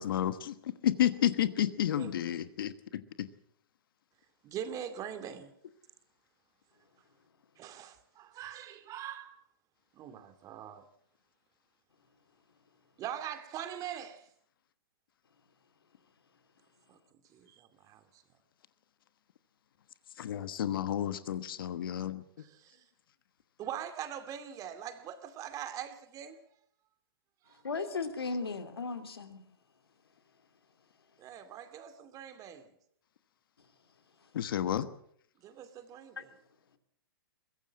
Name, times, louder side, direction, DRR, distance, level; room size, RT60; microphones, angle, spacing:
voice 1, 0.0-3.3 20.2-22.2 34.3-34.9, left 11 dB, 65° left, 1.2 m, -31 dB
voice 2, 4.4-5.5 7.6-9.4 9.9-10.8 13.0-14.3 16.9-17.0 17.3-18.2 22.4-22.9 23.6-26.4 27.4-27.6 31.2-32.7 35.4-36.4, right 9 dB, 30° right, 2.4 m, -42 dB
voice 3, 27.6-29.4, left 4 dB, 90° left, 2.7 m, -36 dB
22.5 x 16.0 x 7.4 m
hypercardioid pair, 130°, 12 cm